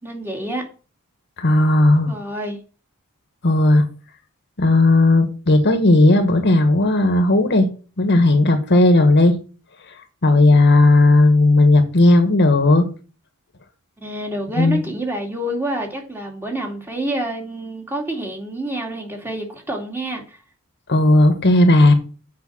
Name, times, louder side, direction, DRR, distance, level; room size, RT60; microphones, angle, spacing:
voice 1, 0.0-0.6 2.1-2.6 14.0-20.4, right 1 dB, 10° right, 2.5 m, -28 dB
voice 2, 1.4-2.1 3.4-3.9 4.6-7.7 8.0-9.3 10.2-12.9 14.6-14.8 20.9-21.9, left 2 dB, 50° left, 1.4 m, -14 dB
8.5 x 5.7 x 7.3 m
head